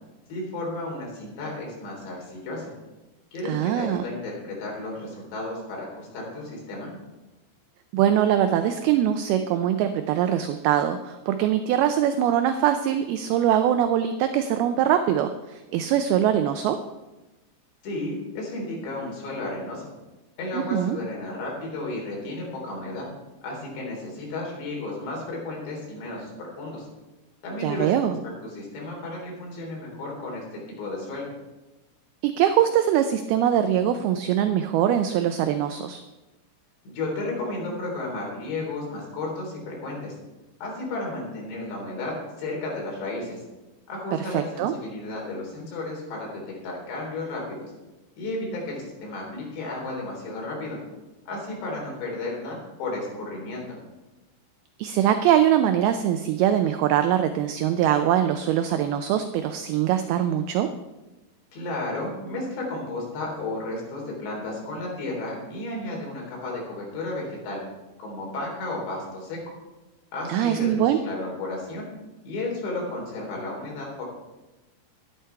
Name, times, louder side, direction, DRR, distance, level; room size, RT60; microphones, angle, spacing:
voice 1, 0.3-2.7 3.3-6.9 17.8-19.9 20.4-23.1 23.4-26.3 26.6-26.9 27.4-27.9 28.4-30.4 30.8-31.3 36.9-40.2 40.6-43.4 43.9-47.7 48.2-50.8 51.3-53.6 61.5-67.6 68.0-69.4 70.1-71.9 72.2-74.0, left 2 dB, 75° left, -2 dB, 5.7 m, -33 dB
voice 2, 3.5-4.0 7.9-16.8 20.5-21.0 27.6-28.2 32.2-36.0 44.1-44.7 54.8-60.7 70.3-71.0, right 10 dB, 80° right, 8 dB, 2.3 m, -22 dB
12.0 x 11.5 x 4.6 m, 1.1 s
omnidirectional pair, 5.0 m